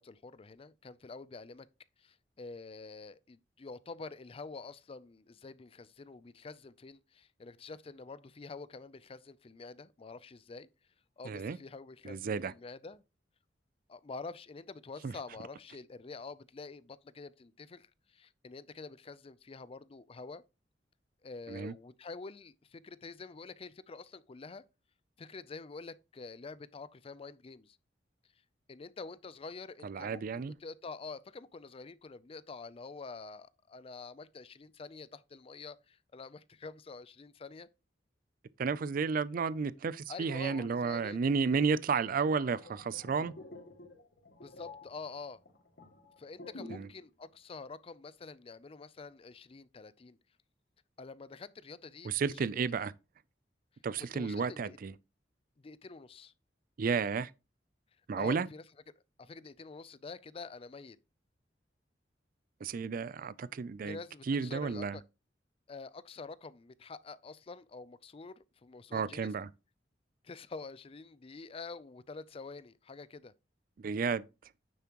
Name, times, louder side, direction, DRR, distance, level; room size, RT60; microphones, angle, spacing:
voice 1, 0.0-1.7 2.0-10.7 11.2-13.0 13.9-20.4 21.2-24.6 25.2-27.8 28.7-37.7 40.1-41.2 44.4-45.4 46.2-50.2 51.0-52.9 54.0-54.8 55.6-56.3 58.2-58.6 59.2-61.0 63.8-65.0 65.7-69.3 70.2-73.3, left 4 dB, 30° left, 0.4 m, -47 dB
voice 2, 11.3-11.6 12.0-12.5 15.0-15.1 21.5-21.7 29.8-30.5 38.6-43.3 46.7-46.9 52.0-52.9 53.8-54.9 56.8-57.3 58.1-58.5 62.6-64.0 64.3-65.0 68.9-69.5 73.8-74.3, right 5 dB, 50° right, 0.4 m, -32 dB
sound 1, 42.2-47.0 47.2-47.5, left 2 dB, 70° left, 2.2 m, -50 dB
9.4 x 7.1 x 3.0 m
head